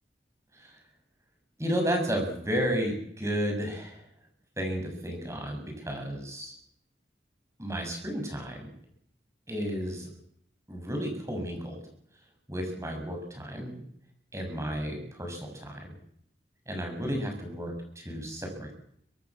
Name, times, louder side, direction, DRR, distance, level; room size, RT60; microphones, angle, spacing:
voice 1, 1.6-4.0 4.6-6.5 7.6-8.7 9.5-10.1 10.7-11.8 12.5-13.8 14.3-15.9 16.7-18.7, equal, 15° right, 3 dB, 7.2 m, -32 dB
25.0 x 19.0 x 7.6 m, 0.69 s
head